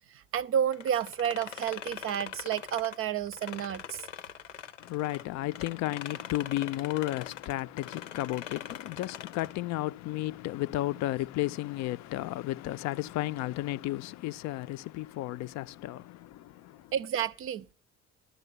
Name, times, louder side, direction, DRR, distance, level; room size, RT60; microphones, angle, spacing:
voice 1, 0.1-4.1 16.9-17.7, right 9 dB, 40° right, 0.5 m, -31 dB
sound 1, 0.7-5.2 5.5-9.6, left 9 dB, 85° left, 0.7 m, -43 dB
voice 2, 4.8-16.9, left 16 dB, 50° left, 0.5 m, -33 dB
12.5 x 6.7 x 6.7 m
figure-of-eight pair, 55°, 36 cm